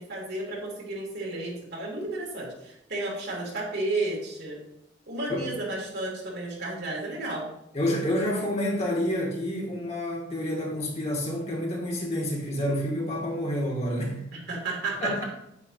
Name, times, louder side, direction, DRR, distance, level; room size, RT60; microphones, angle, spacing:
voice 1, 0.0-4.6 5.1-7.5 14.5-15.2, right 2 dB, 60° right, -2 dB, 3.0 m, -32 dB
voice 2, 7.7-14.2 15.0-15.2, left 1 dB, 35° left, -2 dB, 2.5 m, -28 dB
9.5 x 9.3 x 2.9 m, 0.81 s
head